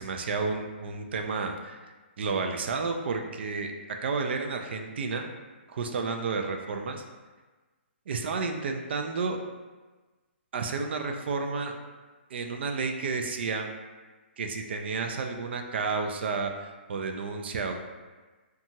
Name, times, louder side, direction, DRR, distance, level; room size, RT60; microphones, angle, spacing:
voice 1, 0.0-3.7 4.0-5.3 5.7-7.0 8.1-9.4 10.5-11.8 12.3-13.7 14.4-17.8, right 4 dB, 65° right, 4 dB, 0.3 m, -31 dB
2.8 x 2.3 x 2.7 m, 1.3 s
hypercardioid pair, 155°, 6 cm